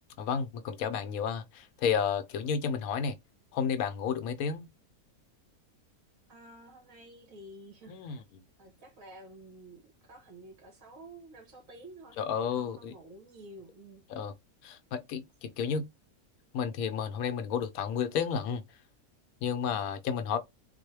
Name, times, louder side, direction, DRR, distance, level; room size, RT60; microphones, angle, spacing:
voice 1, 0.2-3.1 3.5-4.7 7.9-8.2 12.2-13.0 14.1-14.3 14.6-15.9 16.5-18.6 19.4-20.4, left 7 dB, 75° left, 1.0 m, -31 dB
voice 2, 6.3-8.2 8.6-14.0, right 1 dB, 65° right, 1.7 m, -51 dB
3.9 x 2.2 x 3.2 m
omnidirectional pair, 1.5 m